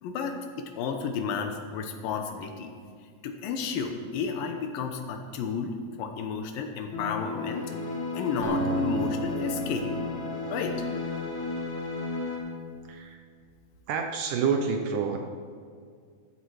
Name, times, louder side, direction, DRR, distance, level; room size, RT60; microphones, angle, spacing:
voice 1, 0.0-2.8 3.2-7.7 8.1-9.9 10.5-10.8, left 5 dB, 80° left, 5 dB, 2.6 m, -32 dB
sound 1, 6.9-12.4, left 3 dB, 55° left, 2.9 m, -33 dB
Acoustic guitar, 8.4-12.0, right 1 dB, 35° right, 1.1 m, -33 dB
voice 2, 12.9-13.2 13.9-15.2, right 6 dB, 70° right, 4 dB, 2.2 m, -28 dB
13.0 x 8.0 x 6.2 m, 2.1 s
omnidirectional pair, 4.2 m